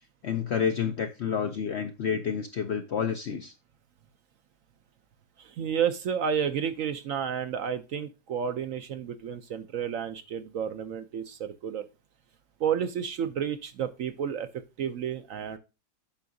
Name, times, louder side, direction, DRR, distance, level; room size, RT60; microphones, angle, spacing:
voice 1, 0.2-3.5, left 7 dB, 65° left, 7 dB, 0.7 m, -29 dB
voice 2, 5.4-11.8 12.6-14.5 14.8-15.6, right 8 dB, 65° right, 10 dB, 0.9 m, -31 dB
8.5 x 6.0 x 2.6 m, 0.28 s
omnidirectional pair, 1.8 m